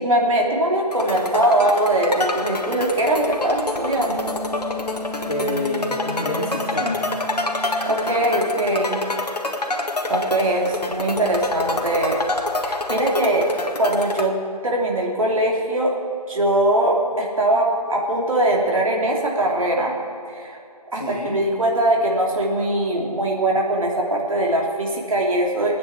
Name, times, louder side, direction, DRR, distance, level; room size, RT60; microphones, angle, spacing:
voice 1, 0.0-4.3 7.8-9.0 10.1-12.2 12.6-13.5 13.8-16.0 16.3-20.0 20.3-20.6 20.9-25.8, right 1 dB, 55° right, -1 dB, 3.2 m, -21 dB
sound 1, 0.9-14.3, left 2 dB, 80° left, 1.8 m, -27 dB
Wind instrument woodwind instrument, 4.0-8.8, left 1 dB, 15° right, 2.6 m, -34 dB
voice 2, 5.3-7.1 20.9-21.4, left 2 dB, 55° left, -5 dB, 3.0 m, -27 dB
20.0 x 9.3 x 7.2 m, 2.5 s
figure-of-eight pair, 165°, 20 cm